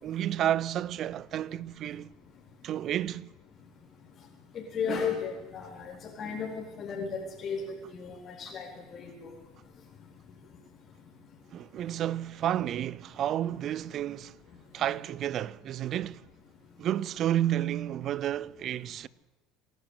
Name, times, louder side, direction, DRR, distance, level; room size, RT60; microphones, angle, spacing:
voice 1, 0.0-2.1 2.6-3.3 11.5-14.4 14.7-16.3 16.8-19.1, right 11 dB, 50° right, 0.6 m, -31 dB
voice 2, 4.5-7.6 7.9-8.7 8.9-9.1, left 6 dB, 45° left, 4.3 m, -34 dB
26.0 x 11.5 x 8.5 m
supercardioid pair, 90°, 0 cm